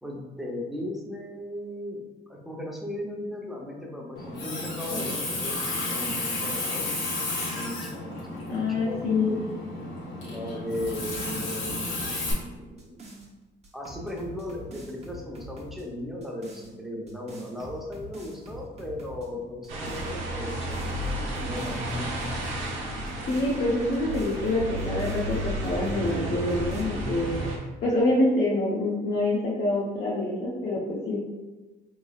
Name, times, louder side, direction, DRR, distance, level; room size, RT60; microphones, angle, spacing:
voice 1, 0.0-2.0 2.3-6.9 7.4-9.0 10.3-11.9 12.4-13.0 13.7-21.0 21.2-22.4, left 1 dB, ahead, -2 dB, 0.8 m, -37 dB
Water tap faucet, 4.2-12.3, left 2 dB, 90° left, 1.1 m, -32 dB
voice 2, 8.5-9.3 23.3-27.4 27.8-31.2, left 2 dB, 55° left, -6 dB, 0.8 m, -26 dB
sound 1, 10.7-13.3 13.6-15.8 16.2-16.7 17.1-19.3 19.6-20.1 20.5-22.7 23.1-26.1 26.5-26.8, right 1 dB, 35° right, 0.9 m, -44 dB
sound 2, 19.7-27.6, right 1 dB, 85° right, 0.9 m, -32 dB
3.7 x 3.1 x 2.4 m, 1.2 s
cardioid pair, 90°, 20 cm